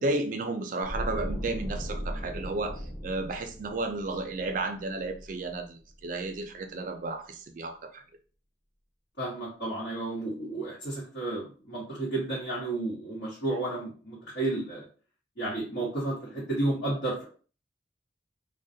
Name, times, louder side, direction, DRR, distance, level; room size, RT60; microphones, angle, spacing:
voice 1, 0.0-8.0, right 2 dB, 45° right, 0.3 m, -33 dB
sound 1, 0.8-5.9 6.2-6.4, equal, 10° left, 0.5 m, -38 dB
voice 2, 9.2-14.8 15.4-17.2, right 2 dB, 75° left, 1.1 m, -32 dB
2.3 x 2.1 x 2.6 m
head